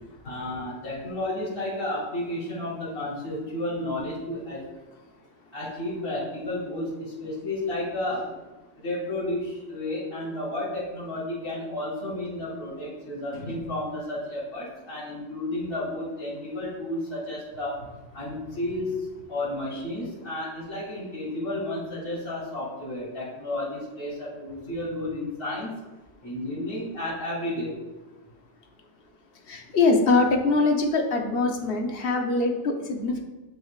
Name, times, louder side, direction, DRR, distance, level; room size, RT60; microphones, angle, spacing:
voice 1, 0.2-4.7 5.5-8.4 8.8-17.8 18.1-25.7 26.2-27.7, left 1 dB, 20° left, -9 dB, 2.1 m, -32 dB
voice 2, 29.5-33.2, left 3 dB, 50° left, 3 dB, 1.0 m, -23 dB
7.9 x 6.2 x 2.4 m, 1.1 s
omnidirectional pair, 1.3 m